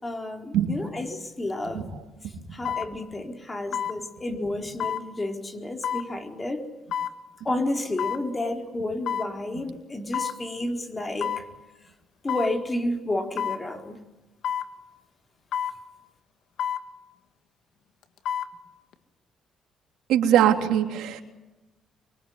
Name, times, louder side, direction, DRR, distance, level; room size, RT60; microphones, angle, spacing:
voice 1, 0.0-1.9 2.5-6.6 7.4-11.4 12.2-14.0, left 1 dB, 25° left, 4 dB, 4.3 m, -31 dB
sound 1, 1.5-1.7 2.7-2.9 3.7-4.0 4.8-5.1 5.8-6.1 6.9-7.2 8.0-8.2 9.1-9.3 10.1-10.4 11.2-11.5 12.3-12.5 13.4-13.6 14.4-14.7 15.5-15.8 16.6-16.9 18.0-18.5 18.9-19.0, left 9 dB, 75° left, 1.9 m, -29 dB
voice 2, 20.1-21.2, right 10 dB, 85° right, 4 dB, 3.2 m, -21 dB
25.0 x 23.5 x 9.7 m, 1.1 s
cardioid pair, 85°, 0 cm